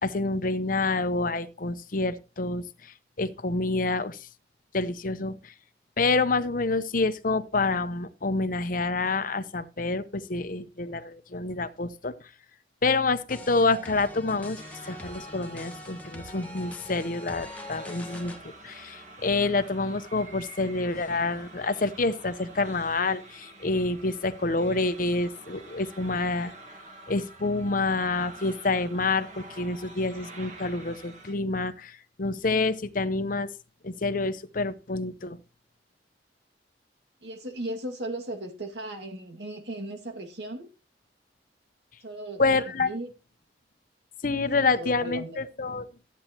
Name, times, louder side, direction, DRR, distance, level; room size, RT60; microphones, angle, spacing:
voice 1, 0.0-4.3 4.7-5.5 6.0-12.1 12.8-18.3 18.6-26.5 27.1-33.5 33.8-35.4 42.4-42.9 44.2-45.9, left 3 dB, 50° left, 0.8 m, -28 dB
sound 1, 13.3-18.4, left 1 dB, 10° left, 1.4 m, -43 dB
sound 2, 14.6-31.3, right 2 dB, 45° right, 1.8 m, -48 dB
voice 2, 37.2-40.7 42.0-43.1 44.6-45.4, right 1 dB, 75° right, 2.2 m, -37 dB
13.0 x 9.4 x 3.0 m
head